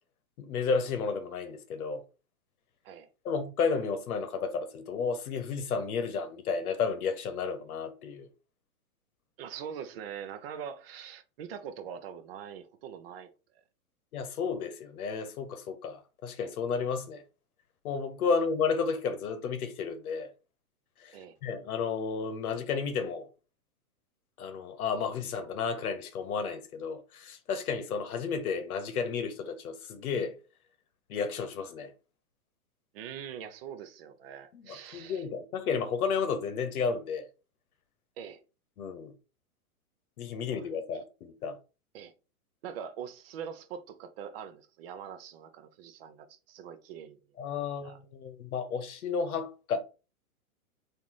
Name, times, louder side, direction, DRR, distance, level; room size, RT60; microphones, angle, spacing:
voice 1, 0.4-2.0 3.2-8.3 14.1-17.2 17.8-20.3 21.0-21.2 21.4-23.3 24.4-30.3 31.1-31.9 34.5-37.3 38.8-39.1 40.2-41.6 47.4-49.8, left 5 dB, 75° left, 0.9 m, -32 dB
voice 2, 9.4-13.3 21.1-21.4 32.9-35.2 38.2-38.4 40.5-40.7 41.9-42.1 42.6-47.2 47.8-48.0, right 8 dB, 40° right, 0.6 m, -43 dB
3.8 x 2.6 x 3.0 m
hypercardioid pair, 150°, 44 cm